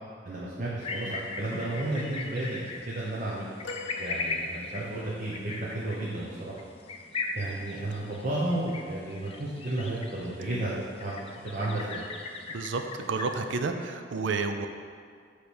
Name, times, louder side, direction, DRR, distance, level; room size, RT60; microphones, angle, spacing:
voice 1, 0.2-3.5 4.0-6.6 7.3-11.2 11.4-12.0, right 1 dB, 45° right, -7 dB, 1.1 m, -32 dB
sound 1, 0.8-13.5, left 3 dB, 30° left, 0.5 m, -39 dB
sound 2, 3.6-5.1 7.4-7.6 8.9-9.0, left 3 dB, 85° left, 0.7 m, -43 dB
voice 2, 13.1-14.7, right 4 dB, 85° right, 7 dB, 0.5 m, -30 dB
8.6 x 3.3 x 6.2 m, 2.1 s
head